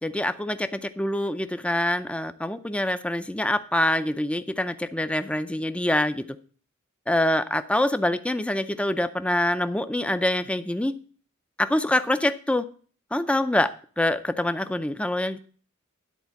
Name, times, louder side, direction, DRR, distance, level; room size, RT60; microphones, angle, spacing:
voice 1, 0.0-6.3 7.1-11.0 11.6-12.6 13.1-13.7 14.0-15.4, left 1 dB, 5° left, 11 dB, 0.4 m, -25 dB
10.5 x 4.3 x 7.2 m, 0.43 s
head